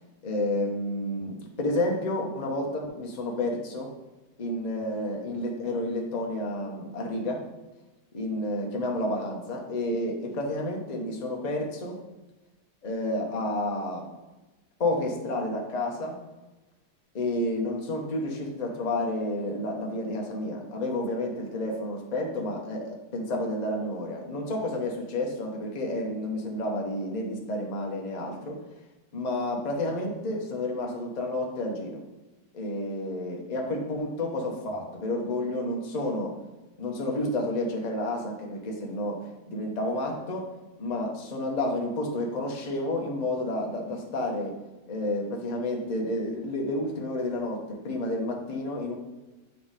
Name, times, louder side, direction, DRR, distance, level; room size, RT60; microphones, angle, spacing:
voice 1, 0.2-3.9 4.4-7.5 8.1-12.0 12.8-14.1 14.8-16.2 17.1-28.6 29.1-32.0 32.5-36.4 36.8-40.5 40.8-44.5 44.9-48.9, left 1 dB, 30° left, 0 dB, 0.9 m, -30 dB
8.3 x 3.4 x 5.1 m, 1.1 s
omnidirectional pair, 1.9 m